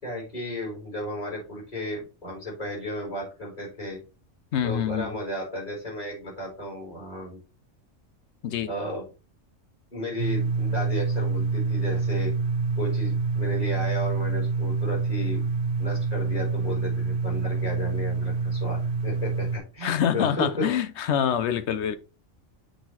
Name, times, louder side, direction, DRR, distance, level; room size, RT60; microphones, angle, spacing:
voice 1, 0.0-4.0 4.6-7.4 8.7-9.0 9.9-12.3 12.8-15.4 15.8-20.7, left 1 dB, 30° left, 4.5 m, -34 dB
voice 2, 4.5-5.2 8.4-8.7 19.8-22.0, left 8 dB, 65° left, 0.9 m, -26 dB
sound 1, 10.2-19.6, right 4 dB, 60° right, 1.1 m, -26 dB
7.8 x 3.8 x 4.3 m
omnidirectional pair, 1.3 m